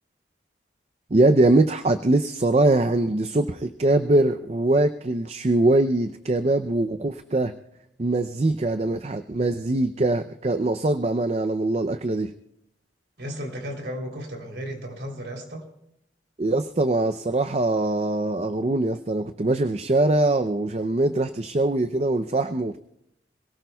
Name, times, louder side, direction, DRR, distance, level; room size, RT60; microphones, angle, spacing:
voice 1, 1.1-7.6 8.0-12.3 16.4-22.8, right 2 dB, 35° right, 9 dB, 0.5 m, -22 dB
voice 2, 13.2-15.7, equal, 70° right, 2 dB, 3.3 m, -34 dB
27.0 x 17.5 x 2.3 m, 0.77 s
head